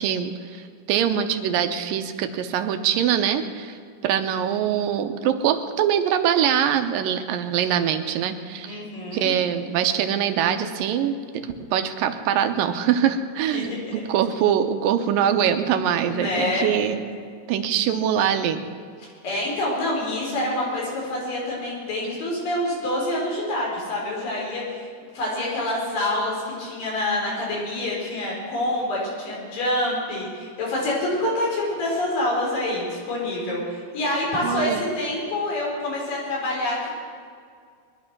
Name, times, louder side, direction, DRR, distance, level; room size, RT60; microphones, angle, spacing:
voice 1, 0.0-3.7 4.0-8.8 9.1-13.7 14.1-17.0 17.5-18.6 34.4-34.8, right 9 dB, 80° right, 8 dB, 2.5 m, -23 dB
voice 2, 8.6-9.3 13.5-14.0 16.1-16.7 19.2-24.9 25.1-36.9, left 1 dB, 75° left, -4 dB, 6.0 m, -26 dB
21.5 x 11.0 x 6.1 m, 2.2 s
omnidirectional pair, 3.9 m